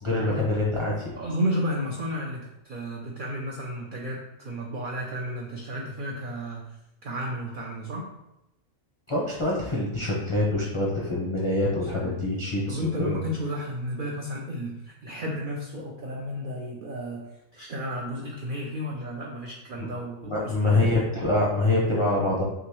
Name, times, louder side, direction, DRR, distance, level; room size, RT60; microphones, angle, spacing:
voice 1, 0.0-1.1 9.1-13.2 19.8-19.9 20.2-22.4, left 2 dB, 40° left, -5 dB, 0.4 m, -25 dB
voice 2, 1.1-6.6 7.0-8.1 11.7-12.1 12.7-17.3 17.5-20.8, equal, 70° right, -1 dB, 0.4 m, -32 dB
3.6 x 2.9 x 3.0 m, 0.92 s
omnidirectional pair, 1.4 m